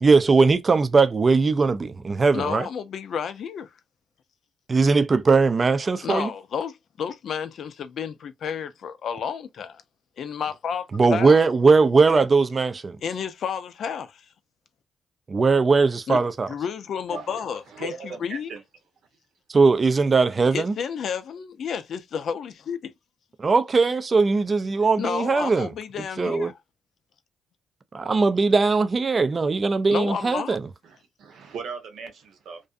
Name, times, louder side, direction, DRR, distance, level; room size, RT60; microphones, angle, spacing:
voice 1, 0.0-2.7 4.7-6.3 10.9-13.0 15.3-16.5 19.5-20.7 23.4-25.7 26.2-26.5 27.9-30.6, right 4 dB, 35° right, 0.4 m, -20 dB
voice 2, 2.3-3.7 6.0-9.8 10.2-11.4 13.0-14.3 16.1-16.2 16.5-18.5 20.5-22.9 25.0-26.6 29.9-30.6, left 7 dB, 60° left, 0.4 m, -31 dB
voice 3, 17.1-17.4 17.7-18.6 30.8-32.6, right 5 dB, 70° right, 0.9 m, -38 dB
2.5 x 2.2 x 2.4 m
cardioid pair, 90°, 0 cm